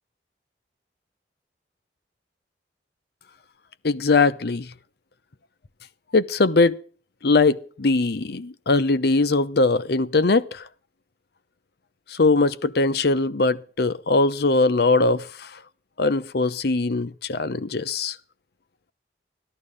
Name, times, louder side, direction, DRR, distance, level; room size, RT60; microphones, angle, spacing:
voice 1, 3.8-4.7 6.1-6.8 7.2-10.7 12.1-15.6 16.0-18.2, left 3 dB, 60° left, 0.8 m, -21 dB
14.0 x 11.5 x 5.0 m
head